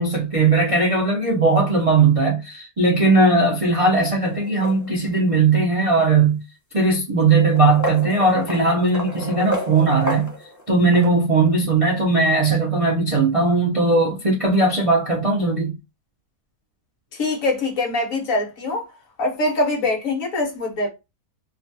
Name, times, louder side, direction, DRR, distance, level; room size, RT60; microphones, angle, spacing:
voice 1, 0.0-6.4 6.7-10.3 10.7-15.7, right 3 dB, 55° right, 0.3 m, -18 dB
sound 1, 4.2-5.2 6.2-6.3 7.3-11.1, equal, 25° left, 0.3 m, -30 dB
voice 2, 17.1-18.8 19.2-20.9, left 2 dB, 60° left, 1.3 m, -23 dB
3.0 x 2.3 x 2.6 m
omnidirectional pair, 1.7 m